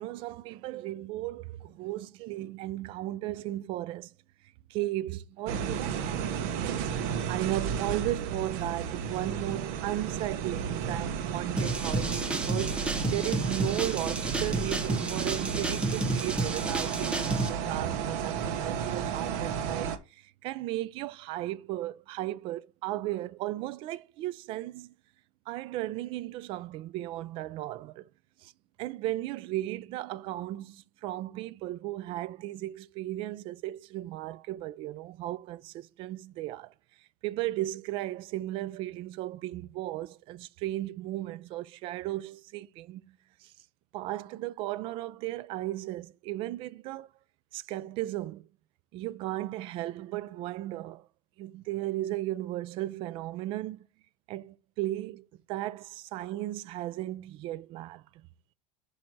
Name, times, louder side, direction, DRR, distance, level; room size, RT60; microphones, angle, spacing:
voice 1, 0.0-4.1 4.7-24.9 25.5-28.1 28.4-28.5 28.8-36.7 37.2-43.5 43.9-47.1 47.5-48.5 48.9-51.1 51.4-53.9 54.3-58.1, right 15 dB, 35° right, 0.4 m, -36 dB
sound 1, 5.5-20.0, right 7 dB, 60° right, 1.0 m, -33 dB
sound 2, 11.6-17.5, right 2 dB, 5° right, 0.8 m, -31 dB
7.7 x 2.8 x 5.9 m
cardioid pair, 175°, 15 cm